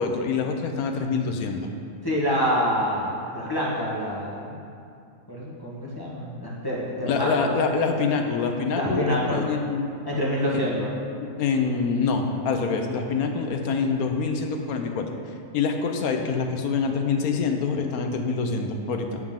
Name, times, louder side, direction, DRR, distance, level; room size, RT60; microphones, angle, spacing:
voice 1, 0.0-1.7 7.0-9.9 11.4-15.1 15.5-19.2, left 5 dB, 65° left, 4 dB, 1.1 m, -25 dB
voice 2, 2.0-4.6 5.3-7.5 8.7-9.4 10.0-10.9, equal, 15° left, -6 dB, 1.1 m, -26 dB
9.5 x 7.3 x 3.7 m, 2.4 s
omnidirectional pair, 1.7 m